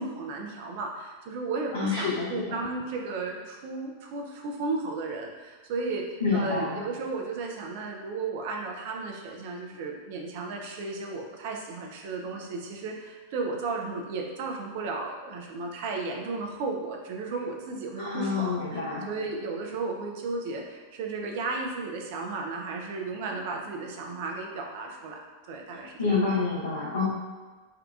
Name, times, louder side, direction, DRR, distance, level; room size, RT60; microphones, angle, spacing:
voice 1, 0.0-6.0 6.3-18.8 19.1-25.2 25.5-26.2, right 3 dB, 50° right, 1 dB, 0.4 m, -34 dB
voice 2, 1.7-2.6 6.2-6.8 18.0-19.1 26.0-27.0, left 4 dB, 70° left, -9 dB, 0.7 m, -28 dB
3.6 x 2.3 x 2.3 m, 1.3 s
figure-of-eight pair, 90°, 0 cm